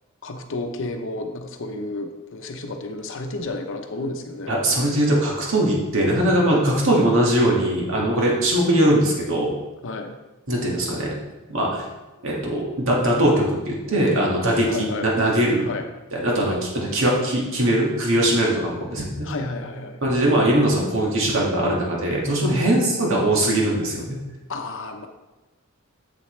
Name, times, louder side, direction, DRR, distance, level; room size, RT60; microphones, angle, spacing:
voice 1, 0.2-4.5 9.8-10.1 14.7-15.1 15.6-15.9 16.4-16.6 19.2-20.0 22.4-23.0 24.5-25.1, left 2 dB, 60° left, 5 dB, 0.8 m, -31 dB
voice 2, 4.5-9.5 10.5-11.1 11.5-11.8 12.2-15.7 16.1-19.3 20.0-24.2, right 1 dB, 65° right, -3 dB, 1.9 m, -21 dB
7.9 x 7.0 x 3.2 m, 1.1 s
head